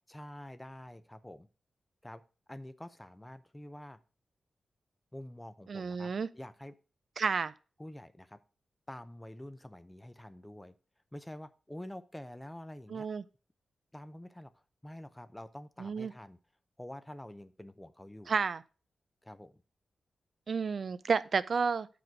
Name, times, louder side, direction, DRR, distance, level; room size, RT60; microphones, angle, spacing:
voice 1, 0.1-1.5 2.0-2.2 2.5-4.0 5.1-6.7 7.8-8.4 8.9-10.7 11.1-13.1 13.9-14.5 14.8-16.4 16.8-18.3 19.2-19.6, left 1 dB, 10° left, 13 dB, 0.6 m, -47 dB
voice 2, 5.7-6.3 7.2-7.5 12.9-13.2 15.8-16.1 18.3-18.6 20.5-21.9, right 5 dB, 55° right, 15 dB, 0.4 m, -31 dB
7.7 x 4.9 x 4.6 m, 0.34 s
wide cardioid pair, 110°, 0 cm